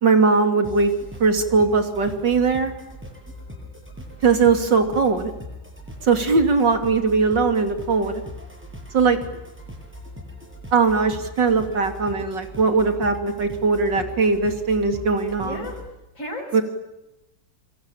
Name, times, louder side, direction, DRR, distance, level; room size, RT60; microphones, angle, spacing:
voice 1, 0.0-0.9 1.2-2.7 4.2-5.3 6.0-8.2 8.9-9.2 10.7-15.7 16.5-16.6, right 4 dB, 70° right, 6 dB, 3.5 m, -20 dB
sound 1, 0.6-15.9, left 1 dB, 5° right, 8.1 m, -40 dB
voice 2, 15.4-15.8 16.1-16.6, left 1 dB, 40° left, -2 dB, 5.9 m, -33 dB
28.5 x 23.5 x 8.9 m, 0.96 s
omnidirectional pair, 2.0 m